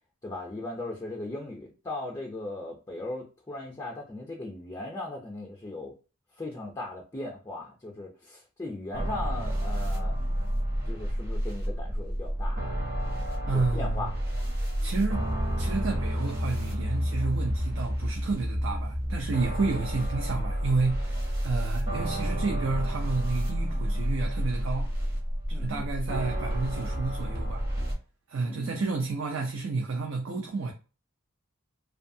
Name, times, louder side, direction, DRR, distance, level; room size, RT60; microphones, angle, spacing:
voice 1, 0.2-5.9 6.4-10.2 10.9-12.6 13.5-14.1 25.5-25.9 28.4-28.8, left 2 dB, 20° left, 0.4 m, -38 dB
sound 1, 8.9-27.9, equal, 50° right, 0.9 m, -30 dB
voice 2, 13.5-14.1 14.8-15.3 15.6-24.9 25.5-27.6 28.3-30.7, right 3 dB, 70° right, 0.4 m, -31 dB
2.7 x 2.3 x 2.6 m
head